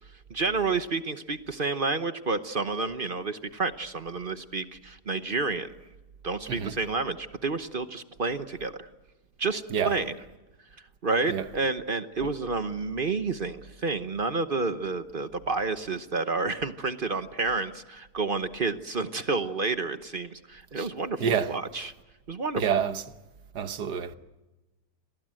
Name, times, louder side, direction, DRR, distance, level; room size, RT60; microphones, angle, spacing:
voice 1, 0.3-5.7 6.2-8.9 9.4-10.1 11.0-21.9 22.3-22.7, right 3 dB, 40° right, 1.0 m, -30 dB
voice 2, 21.2-21.5 22.6-23.0 23.6-24.1, right 7 dB, 85° right, 1.8 m, -27 dB
30.0 x 22.0 x 7.7 m
omnidirectional pair, 1.7 m